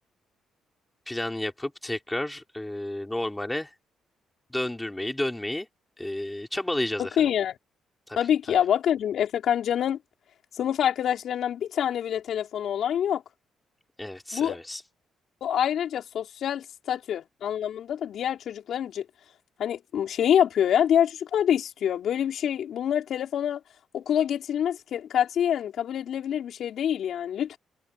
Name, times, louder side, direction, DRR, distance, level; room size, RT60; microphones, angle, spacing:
voice 1, 1.1-3.7 4.5-5.7 6.0-7.3 8.1-8.2 8.5-8.6 14.0-14.8, left 1 dB, 10° left, 3.3 m, -31 dB
voice 2, 7.0-7.6 8.2-10.0 10.6-13.2 14.3-14.6 15.4-19.0 19.6-23.6 23.9-27.6, left 9 dB, 70° left, 4.9 m, -26 dB
cardioid pair, 90°, 0 cm